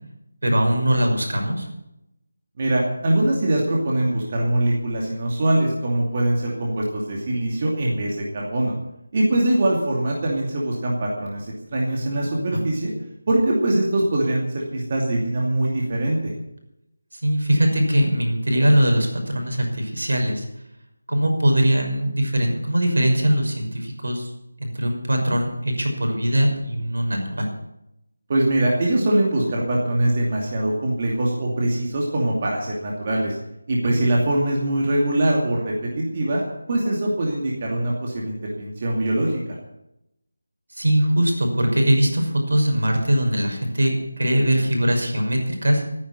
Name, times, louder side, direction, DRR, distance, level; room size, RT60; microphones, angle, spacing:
voice 1, 0.4-1.7 12.5-12.7 17.1-20.5 21.1-24.3 24.6-27.5 33.8-34.0 40.7-45.8, equal, 75° right, 2 dB, 6.0 m, -21 dB
voice 2, 2.6-8.7 9.1-11.5 11.7-12.9 13.3-16.2 28.3-33.4 33.7-36.4 36.7-39.3, right 1 dB, 30° right, -3 dB, 2.6 m, -22 dB
14.0 x 10.0 x 9.6 m, 0.85 s
figure-of-eight pair, 175°, 0 cm